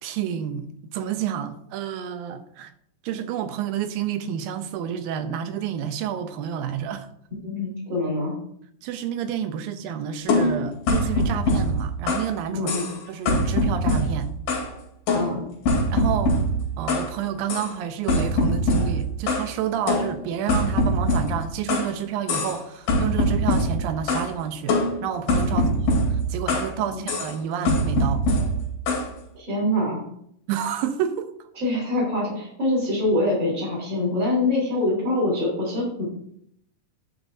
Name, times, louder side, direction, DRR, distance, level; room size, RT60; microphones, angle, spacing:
voice 1, 0.0-2.7 3.0-7.1 8.8-12.7 13.1-14.3 15.9-16.4 16.8-25.7 26.3-28.2 30.5-31.3, right 9 dB, 80° right, 2.5 m, -29 dB
voice 2, 7.4-8.3 12.5-12.8 15.1-15.4 25.5-25.8 26.9-27.0 29.3-30.0 31.5-36.0, left 1 dB, 30° right, 4.5 m, -25 dB
sound 1, 10.3-12.3 12.7-13.0 13.3-14.7 15.1-17.1 17.5-17.7 18.1-19.5 19.9-21.9 22.3-22.6 22.9-24.3 24.7-26.7 27.1-27.3 27.7-29.1, left 1 dB, 90° left, 4.0 m, -23 dB
11.0 x 8.9 x 2.7 m
omnidirectional pair, 4.1 m